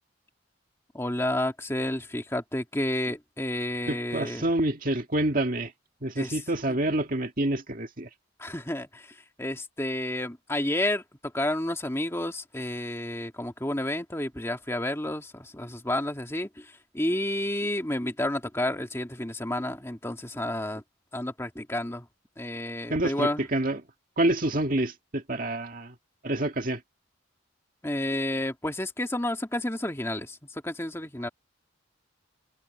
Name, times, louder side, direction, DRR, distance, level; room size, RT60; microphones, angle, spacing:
voice 1, 0.9-4.5 6.2-6.4 6.7-6.8 8.4-20.8 21.1-22.1 22.4-23.5 27.8-31.3, left 1 dB, 15° left, 2.0 m, -30 dB
voice 2, 3.9-5.7 6.0-8.1 22.9-23.8 24.2-26.0 26.2-26.8, right 1 dB, 40° right, 2.0 m, -27 dB
head